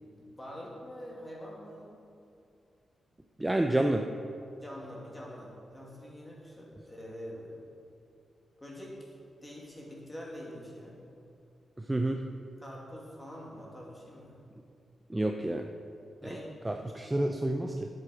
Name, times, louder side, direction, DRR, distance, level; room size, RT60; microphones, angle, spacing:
voice 1, 0.0-2.0 4.6-7.5 8.6-9.1 9.4-11.0 12.6-14.3 16.2-16.6, equal, 15° left, -3 dB, 2.2 m, -45 dB
voice 2, 3.4-4.0 11.9-12.2 15.1-15.6 16.6-17.9, right 1 dB, 10° right, 4 dB, 0.4 m, -29 dB
11.0 x 7.6 x 5.0 m, 2.5 s
wide cardioid pair, 140°, 0 cm